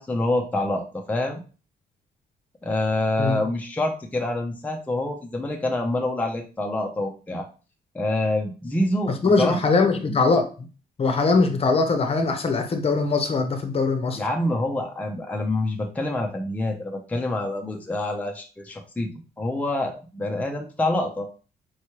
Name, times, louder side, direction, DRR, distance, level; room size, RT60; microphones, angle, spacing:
voice 1, 0.0-1.4 2.6-7.5 7.9-9.6 14.1-19.1 19.4-21.3, left 1 dB, 10° left, 0.7 m, -26 dB
voice 2, 9.2-10.4 11.0-14.2, left 4 dB, 35° left, 0.8 m, -21 dB
4.6 x 3.2 x 3.0 m
cardioid pair, 100°, 16 cm